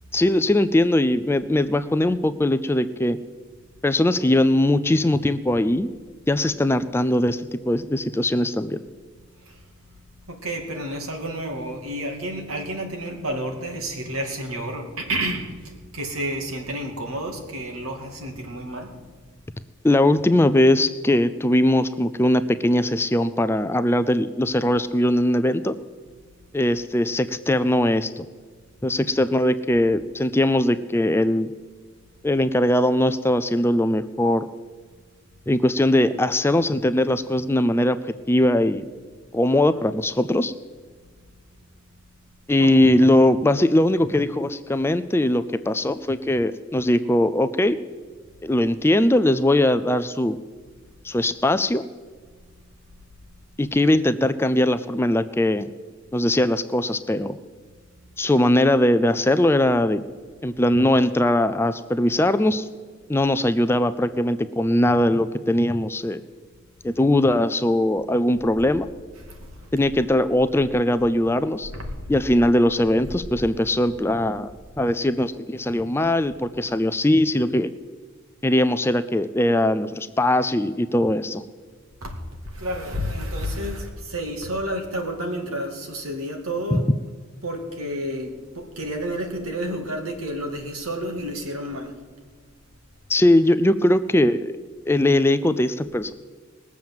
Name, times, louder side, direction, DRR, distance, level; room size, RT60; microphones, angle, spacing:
voice 1, 0.1-3.2 3.8-5.9 6.3-8.8 19.8-25.7 26.5-28.2 28.8-31.5 32.2-34.5 35.5-38.9 39.3-40.5 42.5-47.8 48.4-50.4 51.0-51.8 53.6-55.7 56.1-57.4 58.2-60.0 60.4-62.7 63.1-66.2 66.8-68.9 69.7-71.7 72.1-74.5 74.8-77.7 78.4-81.4 86.7-86.8 93.1-94.5 94.9-96.1, left 1 dB, 10° left, 11 dB, 0.4 m, -20 dB
voice 2, 10.3-18.9 42.6-42.7 69.1-69.7 71.7-72.3 73.0-73.5 82.0-82.2 82.5-86.9 87.4-92.0, right 1 dB, 90° right, 3 dB, 2.4 m, -30 dB
20.0 x 7.2 x 7.7 m, 1.5 s
head